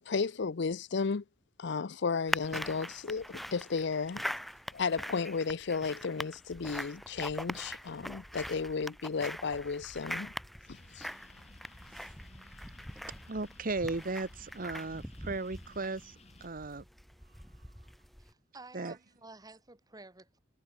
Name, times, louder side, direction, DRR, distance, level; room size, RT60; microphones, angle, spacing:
voice 1, 0.1-1.2 1.6-4.2 4.7-10.3 11.0-11.1, left 5 dB, 65° left, 0.6 m, -33 dB
sound 1, 2.3-18.3, equal, ahead, 0.7 m, -42 dB
sound 2, 10.6-16.5, left 2 dB, 35° left, 3.2 m, -58 dB
voice 2, 13.3-16.1 16.4-16.8 18.7-19.0, right 3 dB, 45° right, 1.2 m, -36 dB
voice 3, 18.2-20.4, right 3 dB, 20° right, 1.9 m, -52 dB
head